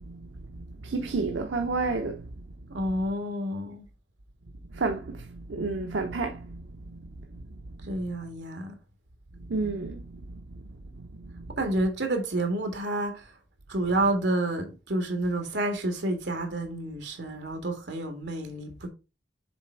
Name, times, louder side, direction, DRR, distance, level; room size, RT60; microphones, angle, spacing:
voice 1, 0.8-2.2 4.7-6.6 9.5-10.0 11.3-11.4, right 3 dB, 85° right, 0.7 m, -30 dB
voice 2, 2.7-3.8 7.8-8.7 11.6-13.3 13.7-18.9, right 1 dB, 70° right, 1.8 m, -29 dB
7.1 x 3.4 x 4.4 m
head